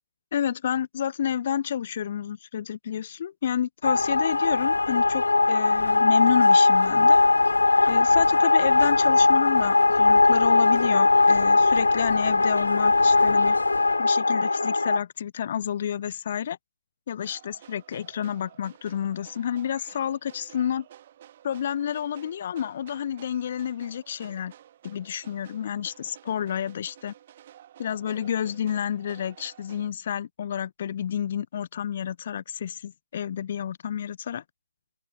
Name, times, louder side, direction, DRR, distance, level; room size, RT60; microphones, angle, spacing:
voice 1, 0.3-7.2 7.9-13.6 14.0-16.6 17.1-20.9 21.4-24.5 24.8-27.1 27.8-34.4, left 9 dB, 40° left, 1.8 m, -30 dB
sound 1, 3.8-15.0, left 3 dB, 75° left, 0.6 m, -20 dB
sound 2, 17.2-29.9, right 11 dB, 35° right, 7.6 m, -52 dB
open air
figure-of-eight pair, 145°, 0 cm